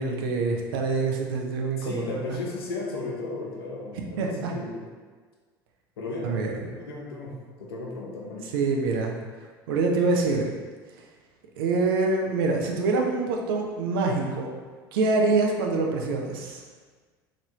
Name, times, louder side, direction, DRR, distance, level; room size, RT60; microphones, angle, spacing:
voice 1, 0.0-2.0 2.3-2.4 3.9-4.5 6.2-6.6 8.5-9.1 9.7-10.5 11.6-14.5 14.9-16.6, right 3 dB, 65° right, 1 dB, 0.5 m, -25 dB
voice 2, 1.8-4.8 6.0-6.4 6.7-8.6, left 3 dB, 70° left, -1 dB, 0.6 m, -35 dB
3.3 x 2.5 x 3.0 m, 1.5 s
figure-of-eight pair, 65°, 13 cm